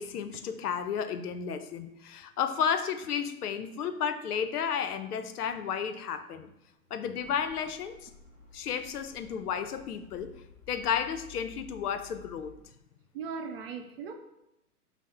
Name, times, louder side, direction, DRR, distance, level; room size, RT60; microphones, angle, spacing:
voice 1, 0.0-6.5 6.9-8.1 8.5-10.3 10.7-12.5, left 7 dB, 80° left, 10 dB, 0.6 m, -32 dB
sound 1, 7.2-12.7, left 7 dB, 25° left, 1.3 m, -55 dB
voice 2, 13.1-14.1, right 6 dB, 40° right, 4 dB, 0.5 m, -38 dB
5.7 x 2.0 x 4.2 m, 0.87 s
hypercardioid pair, 130°, 45 cm